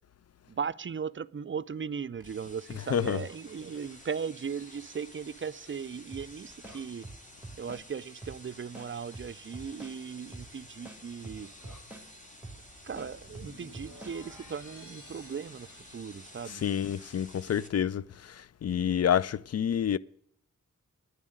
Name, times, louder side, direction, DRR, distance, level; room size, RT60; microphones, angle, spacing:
voice 1, 0.5-7.0 7.6-11.5 12.8-16.6, right 6 dB, 40° right, 0.5 m, -38 dB
sound 1, 2.1-2.6 4.5-6.9 10.4-16.7, left 1 dB, 75° left, 2.5 m, -56 dB
sound 2, 2.2-17.7, left 1 dB, 25° left, 2.4 m, -52 dB
sound 3, 6.1-6.3 6.6-7.8 8.2-8.4 8.7-10.0 10.3-10.5 10.8-12.1 12.4-12.6 13.0-14.2, right 2 dB, 5° right, 2.4 m, -45 dB
voice 2, 16.6-18.0 18.6-20.0, left 9 dB, 55° left, 0.4 m, -27 dB
10.5 x 7.3 x 7.8 m
cardioid pair, 45°, 30 cm